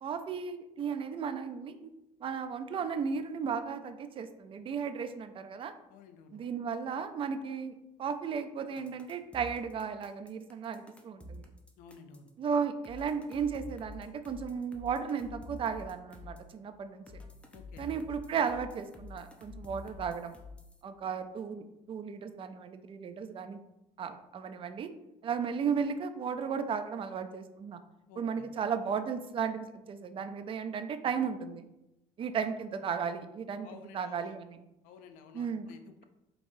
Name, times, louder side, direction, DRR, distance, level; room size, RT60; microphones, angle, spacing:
voice 1, 0.0-1.9 2.2-5.7 6.3-7.7 8.0-11.5 12.4-17.0 17.8-20.3 20.8-23.6 24.0-24.9 25.2-27.8 28.2-31.6 32.2-34.6 35.3-35.7, right 6 dB, 40° right, 9 dB, 0.4 m, -35 dB
voice 2, 5.9-6.4 11.8-12.3 17.5-17.9 28.1-28.4 33.6-34.3 34.8-36.0, left 6 dB, 80° left, 8 dB, 0.5 m, -53 dB
sound 1, 8.8-12.3 12.8-16.5 17.1-20.8, left 2 dB, 10° left, 0.6 m, -48 dB
5.2 x 3.0 x 2.6 m, 0.90 s
cardioid pair, 100°, 14 cm